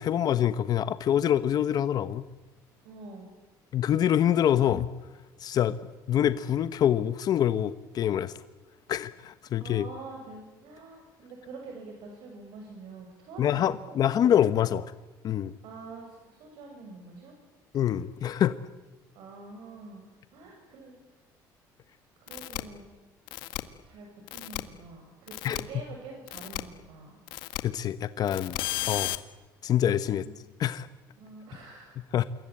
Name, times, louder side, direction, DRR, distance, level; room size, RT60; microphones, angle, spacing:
voice 1, 0.0-2.2 3.7-4.9 5.4-5.8 6.1-8.3 8.9-9.9 13.4-14.8 15.2-15.5 17.7-18.6 25.4-25.6 27.6-28.6 28.9-29.2 29.6-30.2 30.6-30.9 32.1-32.2, left 10 dB, 55° left, 13 dB, 1.0 m, -25 dB
voice 2, 2.8-3.3 9.5-13.7 15.6-17.4 19.2-20.1 20.3-21.0 22.2-22.9 23.8-27.2 30.1-30.4 31.2-32.0, right 3 dB, 75° right, 2 dB, 6.9 m, -46 dB
sound 1, 22.3-22.6 23.3-23.6 24.3-24.6 25.3-25.6 26.3-26.6 27.3-27.6 28.3-29.2, left 18 dB, 85° left, 1.6 m, -33 dB
27.5 x 22.5 x 8.8 m, 1.2 s
cardioid pair, 110°, 8 cm